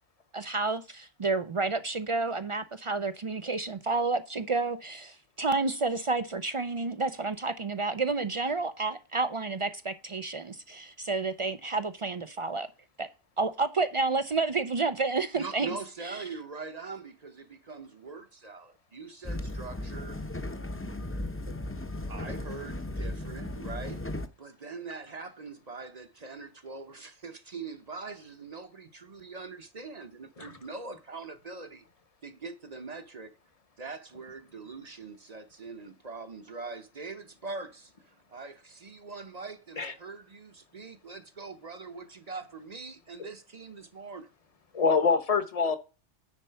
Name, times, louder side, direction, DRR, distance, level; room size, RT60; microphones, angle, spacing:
voice 1, 0.3-12.7 13.0-13.1 13.4-15.7 16.0-16.2, right 3 dB, 55° right, 0.3 m, -30 dB
voice 2, 15.3-20.2 22.1-24.0 24.4-31.8 32.2-33.3 33.8-44.3, right 4 dB, 40° right, 0.8 m, -42 dB
sound 1, 19.2-24.3, left 1 dB, 15° left, 0.6 m, -36 dB
voice 3, 44.7-45.8, left 5 dB, 35° left, 0.9 m, -25 dB
9.6 x 4.3 x 5.6 m
omnidirectional pair, 1.2 m